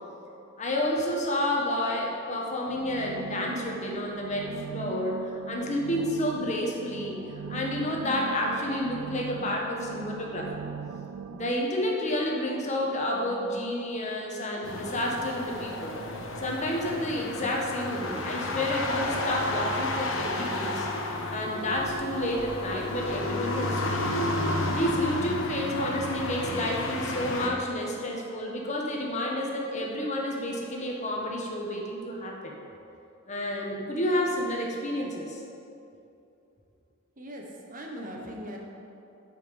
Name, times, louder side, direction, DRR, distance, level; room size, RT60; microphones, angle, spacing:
voice 1, 0.6-7.2 7.5-10.5 11.3-16.0 16.4-20.9 21.3-24.2 24.7-32.5 33.3-35.4, left 1 dB, 35° left, -1 dB, 1.2 m, -30 dB
sound 1, 2.7-11.5, right 6 dB, 90° right, 0.3 m, -39 dB
sound 2, 14.6-27.5, left 1 dB, 65° left, 1.0 m, -31 dB
voice 2, 37.2-38.6, equal, 40° right, -1 dB, 1.3 m, -40 dB
8.4 x 5.8 x 7.4 m, 2.7 s
head